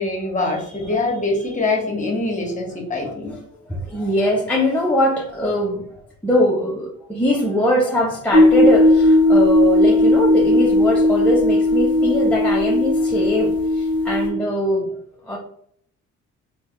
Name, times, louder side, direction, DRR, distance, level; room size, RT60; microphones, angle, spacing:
voice 1, 0.0-3.4, left 2 dB, 25° left, 0 dB, 1.1 m, -24 dB
voice 2, 3.0-15.0 15.2-15.4, equal, 5° left, -4 dB, 0.5 m, -22 dB
sound 1, 8.3-14.3, left 1 dB, 15° right, 1.5 m, -16 dB
3.4 x 2.1 x 2.9 m, 0.64 s
cardioid pair, 90°, 30 cm